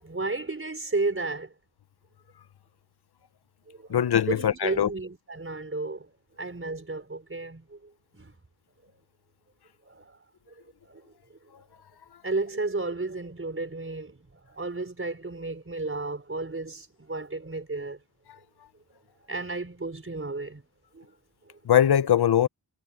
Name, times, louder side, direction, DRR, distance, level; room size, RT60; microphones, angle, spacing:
voice 1, 0.0-1.5 3.7-4.0 4.3-6.1 6.4-8.3 9.8-10.2 10.8-11.1 12.2-18.0 19.3-20.6 20.9-21.1, right 3 dB, 30° right, 5.0 m, -33 dB
voice 2, 3.9-4.9 21.7-22.5, left 10 dB, 70° left, 0.7 m, -21 dB
wide cardioid pair, 120°, 41 cm